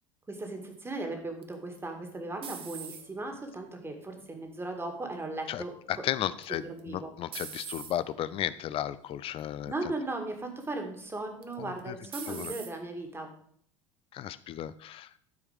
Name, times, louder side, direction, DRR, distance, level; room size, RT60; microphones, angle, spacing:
voice 1, 0.3-5.7 6.6-7.1 9.7-13.3, right 2 dB, 15° right, 4 dB, 1.8 m, -37 dB
sound 1, 1.4-3.3 3.9-4.4 6.4-6.8 7.3-7.9 8.7-9.0 9.4-9.5 11.4-11.8 12.1-12.7, right 6 dB, 35° right, 1.1 m, -42 dB
voice 2, 5.9-9.7 11.6-11.9 12.3-12.5 14.1-15.1, left 11 dB, 35° left, 15 dB, 0.5 m, -34 dB
12.0 x 4.8 x 5.0 m, 0.63 s
figure-of-eight pair, 70°, 17 cm